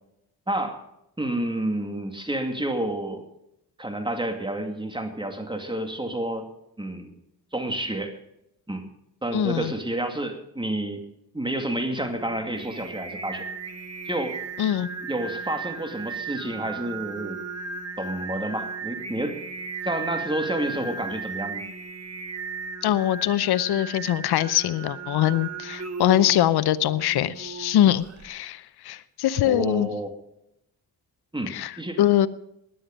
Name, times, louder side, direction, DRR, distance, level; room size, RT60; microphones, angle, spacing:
voice 1, 0.5-0.8 1.2-3.3 3.8-6.5 6.8-7.1 7.5-8.2 8.7-8.9 9.2-11.0 11.3-13.4 14.1-14.4 15.1-17.4 18.0-19.4 19.8-21.6 29.4-30.1 31.3-32.0, right 1 dB, 10° right, 6 dB, 2.3 m, -29 dB
voice 2, 9.3-9.7 14.6-14.9 22.8-29.9 31.5-32.3, left 12 dB, 75° left, 15 dB, 0.7 m, -23 dB
Singing, 12.0-28.3, right 4 dB, 40° right, 1.8 m, -36 dB
17.0 x 10.0 x 5.2 m, 0.83 s
cardioid pair, 75°, 38 cm